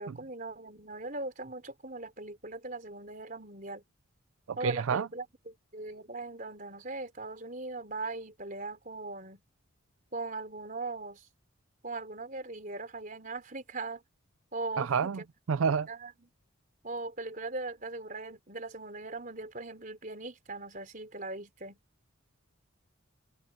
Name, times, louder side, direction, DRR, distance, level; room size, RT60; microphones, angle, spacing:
voice 1, 0.0-3.8 4.6-9.4 10.1-11.3 11.8-14.0 14.5-15.3 15.9-16.3 16.8-21.8, right 3 dB, 40° right, 4.1 m, -40 dB
voice 2, 4.6-5.1 14.8-15.2 15.5-15.9, right 6 dB, 90° right, 0.4 m, -28 dB
head